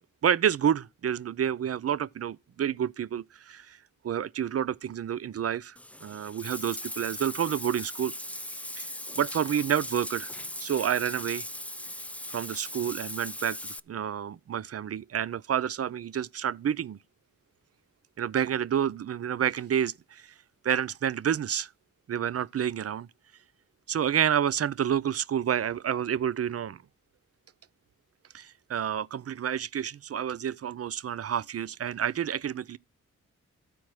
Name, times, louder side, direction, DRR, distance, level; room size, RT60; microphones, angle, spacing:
voice 1, 0.2-3.8 4.0-8.1 8.8-8.9 9.2-10.3 10.6-11.5 12.3-17.0 18.2-20.3 20.6-21.7 22.1-23.1 23.9-26.8 28.3-32.8, right 9 dB, 50° right, 0.5 m, -29 dB
Bathtub (filling or washing), 5.8-13.8, left 1 dB, 5° left, 0.4 m, -39 dB
13.0 x 4.5 x 4.7 m
cardioid pair, 65°, 32 cm